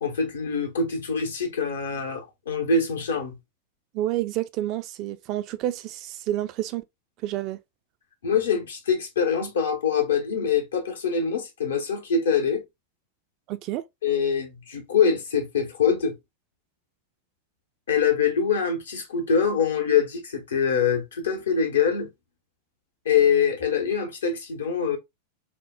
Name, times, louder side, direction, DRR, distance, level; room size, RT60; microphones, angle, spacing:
voice 1, 0.0-3.4 8.2-12.6 14.0-16.2 17.9-22.1 23.0-25.0, left 6 dB, 65° left, 0.8 m, -24 dB
voice 2, 3.9-6.8 7.2-7.6 13.5-13.8, right 14 dB, 40° right, 0.3 m, -29 dB
4.2 x 2.1 x 2.2 m
figure-of-eight pair, 90°, 0 cm